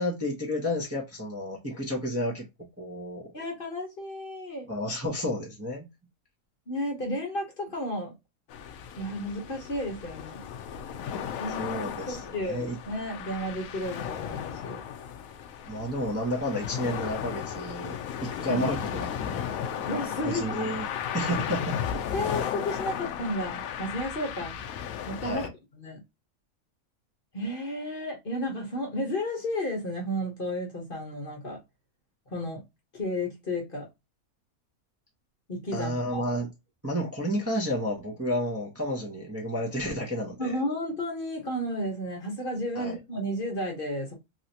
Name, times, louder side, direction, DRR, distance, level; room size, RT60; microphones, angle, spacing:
voice 1, 0.0-2.4 2.8-3.2 4.7-5.9 11.6-12.8 15.7-19.4 20.2-20.9 21.1-21.8 25.2-25.5 35.7-36.5 36.8-40.6 42.7-43.0, equal, 10° right, 0.9 m, -31 dB
voice 2, 3.3-4.7 6.7-8.1 8.9-10.4 11.4-14.8 18.5-18.7 19.8-20.7 22.1-24.6 25.1-25.4 25.8-26.0 27.3-31.6 32.3-32.6 32.9-33.9 35.5-36.2 40.4-44.1, left 1 dB, 40° left, 1.2 m, -33 dB
sound 1, 8.5-25.5, left 8 dB, 75° left, 1.0 m, -35 dB
3.2 x 2.8 x 2.7 m
omnidirectional pair, 1.5 m